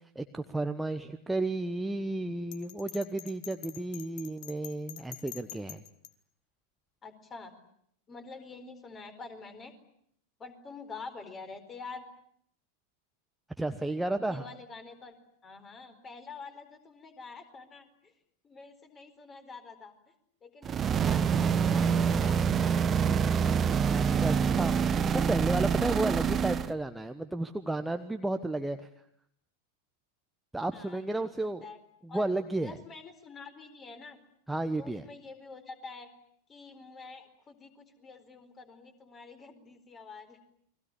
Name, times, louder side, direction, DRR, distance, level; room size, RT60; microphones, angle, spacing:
voice 1, 0.1-5.8 13.6-14.5 23.4-28.8 30.5-31.6 32.0-32.8 34.5-35.0, right 2 dB, 5° right, 7 dB, 1.2 m, -33 dB
Bell, 2.5-6.1, left 13 dB, 45° left, 1.9 m, -45 dB
voice 2, 7.0-7.5 8.1-9.7 10.4-12.1 14.2-15.2 15.4-18.1 18.4-19.9 20.4-22.9 30.7-31.3 31.6-31.8 32.1-34.2 34.8-36.1 36.5-40.4, left 4 dB, 20° left, 8 dB, 4.5 m, -47 dB
sound 1, 20.6-26.7, right 7 dB, 25° right, 1.2 m, -26 dB
30.0 x 22.5 x 8.6 m, 0.68 s
figure-of-eight pair, 90°, 0 cm